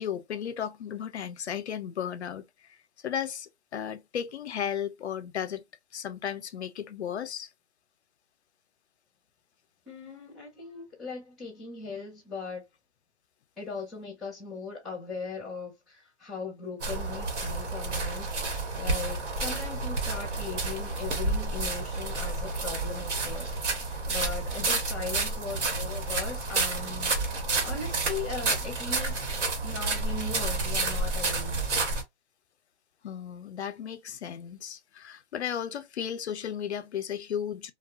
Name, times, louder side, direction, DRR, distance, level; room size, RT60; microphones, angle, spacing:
voice 1, 0.0-2.5 3.0-5.6 5.9-7.5 24.6-24.7 33.0-37.7, left 9 dB, 70° left, 0.6 m, -34 dB
voice 2, 9.9-12.6 13.6-23.6 23.8-27.1 27.6-31.7, left 4 dB, ahead, 0.3 m, -39 dB
sound 1, 16.8-32.0, right 3 dB, 85° right, 1.2 m, -30 dB
2.8 x 2.2 x 2.4 m
hypercardioid pair, 180°, 34 cm